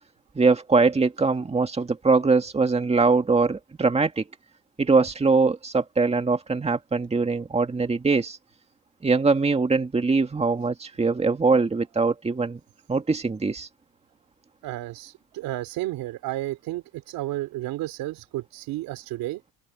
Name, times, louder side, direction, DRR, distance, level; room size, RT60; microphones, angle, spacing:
voice 1, 0.4-4.2 4.8-8.4 9.0-12.6 12.9-13.7, right 4 dB, 20° right, 2.0 m, -22 dB
voice 2, 14.6-19.4, right 16 dB, 90° right, 4.0 m, -32 dB
open air
cardioid pair, 120°, 34 cm